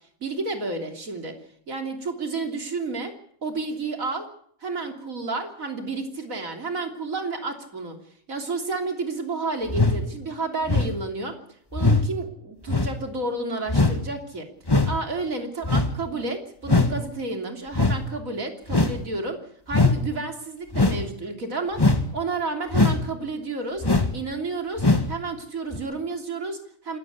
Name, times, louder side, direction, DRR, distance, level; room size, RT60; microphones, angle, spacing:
voice 1, 0.2-1.4 1.7-3.1 3.4-4.3 4.6-8.0 8.3-11.4 11.7-14.5 14.8-19.4 19.7-21.9 22.1-23.9 24.1-27.0, right 3 dB, 80° right, 4 dB, 3.5 m, -31 dB
sound 1, 9.7-10.0 10.7-11.0 11.7-12.0 12.7-12.9 13.7-14.0 14.7-15.0 15.6-15.9 16.6-16.9 17.7-18.0 18.7-19.0 19.7-20.0 20.7-21.0 21.7-22.0 22.7-23.0 23.8-24.2 24.8-25.1 25.7-25.8, left 3 dB, 20° left, 1.7 m, -20 dB
26.5 x 14.0 x 8.4 m, 0.63 s
omnidirectional pair, 1.4 m